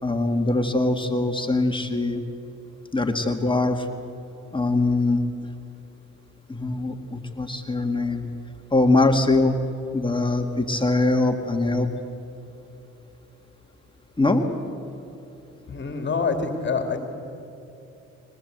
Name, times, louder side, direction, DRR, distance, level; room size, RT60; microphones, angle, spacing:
voice 1, 0.0-2.2 2.9-3.9 4.5-5.2 6.5-8.3 8.7-9.6 9.9-11.9 14.2-14.5, left 2 dB, 15° left, 4 dB, 1.8 m, -22 dB
voice 2, 15.7-17.0, left 4 dB, 35° left, 5 dB, 2.5 m, -26 dB
23.0 x 19.0 x 8.0 m, 2.9 s
cardioid pair, 90°, 30 cm